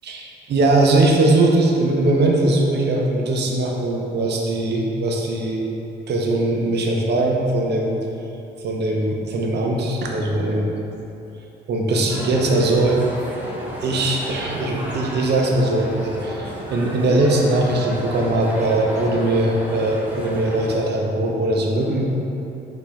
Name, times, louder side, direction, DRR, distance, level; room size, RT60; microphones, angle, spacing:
voice 1, 0.0-5.6 6.1-8.0 8.6-10.7 11.7-13.0 13.8-22.1, right 2 dB, 60° right, 0 dB, 0.7 m, -20 dB
sound 1, 12.1-20.8, equal, 10° right, 0.7 m, -33 dB
5.0 x 2.7 x 3.5 m, 2.9 s
cardioid pair, 90°, 20 cm